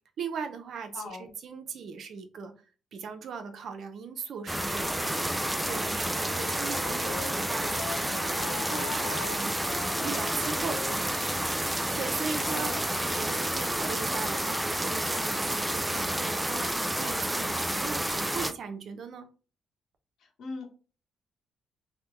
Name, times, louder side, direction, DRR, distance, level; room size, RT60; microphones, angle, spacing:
voice 1, 0.2-2.5 2.9-5.1 5.6-11.2 12.0-12.7 13.0-19.3, right 5 dB, 65° right, 7 dB, 0.6 m, -39 dB
voice 2, 0.9-1.3 5.0-5.5 12.4-13.4 16.6-16.8 20.2-20.7, left 4 dB, 70° left, 2 dB, 1.1 m, -42 dB
sound 1, 4.5-18.5, right 1 dB, 10° right, 0.3 m, -30 dB
Wind instrument woodwind instrument, 6.3-11.6, left 7 dB, 85° left, 0.5 m, -41 dB
3.2 x 2.1 x 3.0 m, 0.36 s
cardioid pair, 90°, 0 cm